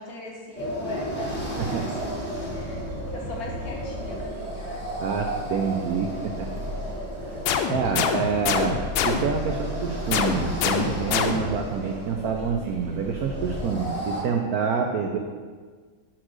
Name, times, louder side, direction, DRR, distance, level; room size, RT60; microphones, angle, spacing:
voice 1, 0.0-2.9 3.1-4.9, left 2 dB, 55° left, -2 dB, 1.4 m, -39 dB
sound 1, 0.5-14.2, equal, 5° left, 1.1 m, -34 dB
sound 2, 2.0-13.6, equal, 60° right, 1.3 m, -39 dB
voice 2, 5.0-6.5 7.7-8.8 9.0-15.2, right 6 dB, 80° right, 3 dB, 0.8 m, -27 dB
sound 3, 7.5-9.5 10.1-11.7, left 7 dB, 80° left, 1.4 m, -26 dB
5.8 x 4.4 x 6.3 m, 1.5 s
omnidirectional pair, 2.2 m